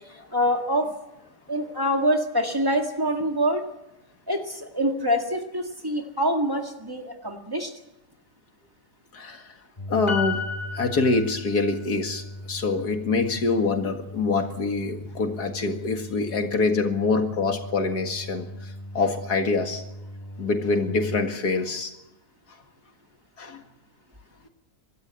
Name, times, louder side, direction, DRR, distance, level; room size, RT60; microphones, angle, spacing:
voice 1, 0.1-0.9 1.5-3.7 4.3-7.7 15.0-15.1, equal, 15° right, 2 dB, 1.9 m, -25 dB
sound 1, 9.8-21.2, equal, 20° left, 1.3 m, -38 dB
voice 2, 9.9-10.4 10.7-18.4 18.9-19.8 20.4-21.9 23.4-23.6, left 3 dB, 85° left, 5 dB, 2.5 m, -25 dB
Piano, 10.1-11.9 12.2-12.3, left 6 dB, 35° left, 2.1 m, -33 dB
24.5 x 13.0 x 8.4 m, 0.92 s
omnidirectional pair, 1.7 m